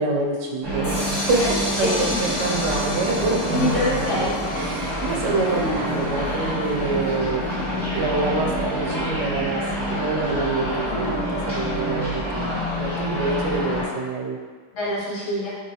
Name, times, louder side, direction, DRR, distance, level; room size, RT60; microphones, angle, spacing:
voice 1, 0.0-1.5 1.8-3.6 4.6-14.4, right 3 dB, 90° right, 0 dB, 0.9 m, -26 dB
sound 1, 0.6-13.9, equal, 25° right, 0.8 m, -26 dB
sound 2, 0.8-6.7, left 1 dB, 65° left, 1.2 m, -33 dB
voice 2, 1.8-2.2 3.5-4.3 14.7-15.6, left 1 dB, 85° left, -8 dB, 1.3 m, -25 dB
3.3 x 2.7 x 2.7 m, 1.5 s
omnidirectional pair, 1.2 m